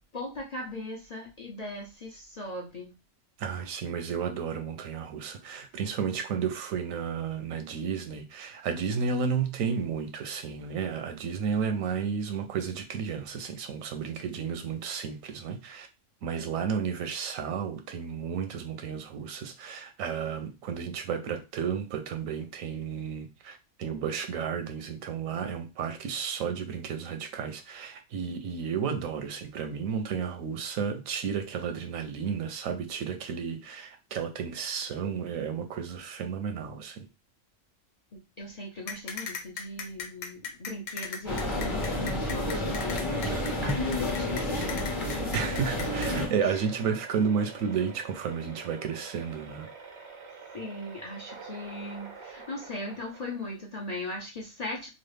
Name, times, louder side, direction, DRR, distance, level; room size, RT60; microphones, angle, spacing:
voice 1, 0.1-3.0 38.1-44.9 46.2-46.7 49.8-50.1 50.5-54.9, left 1 dB, 45° left, 0.5 m, -39 dB
voice 2, 3.4-15.9 16.2-37.1 43.2-43.7 45.3-49.7, right 6 dB, 85° right, 1.0 m, -32 dB
sound 1, 38.9-46.1, left 6 dB, 75° left, 1.0 m, -37 dB
sound 2, 41.3-46.3, left 1 dB, 25° left, 0.8 m, -30 dB
sound 3, 44.9-53.7, right 5 dB, 45° right, 0.3 m, -45 dB
3.1 x 2.3 x 3.2 m
omnidirectional pair, 1.4 m